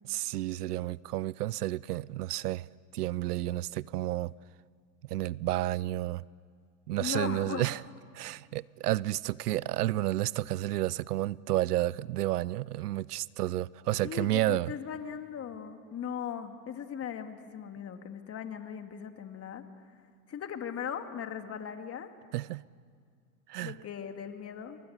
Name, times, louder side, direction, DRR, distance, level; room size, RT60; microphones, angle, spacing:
voice 1, 0.0-4.3 5.1-6.2 6.9-7.8 8.1-14.7 22.3-22.6 23.5-23.8, right 15 dB, 85° right, 0.6 m, -31 dB
voice 2, 7.0-7.7 14.0-19.6 20.3-22.1 23.6-24.8, left 8 dB, 30° left, 2.4 m, -38 dB
28.5 x 24.5 x 8.2 m
hypercardioid pair, 100°, 45 cm